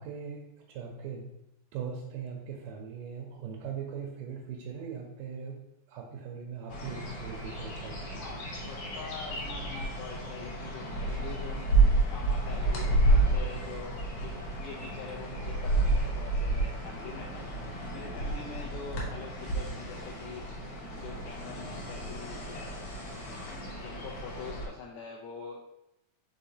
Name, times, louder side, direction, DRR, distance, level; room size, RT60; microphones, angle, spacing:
voice 1, 0.0-5.6 5.9-8.3 11.7-11.8, right 6 dB, 85° right, 0 dB, 2.2 m, -40 dB
sound 1, 6.7-24.7, right 2 dB, 65° left, 1.7 m, -30 dB
voice 2, 8.2-17.4 17.9-20.5 20.9-22.8 23.5-25.6, left 5 dB, 85° left, -3 dB, 1.6 m, -44 dB
5.6 x 3.5 x 2.7 m, 0.83 s
omnidirectional pair, 3.7 m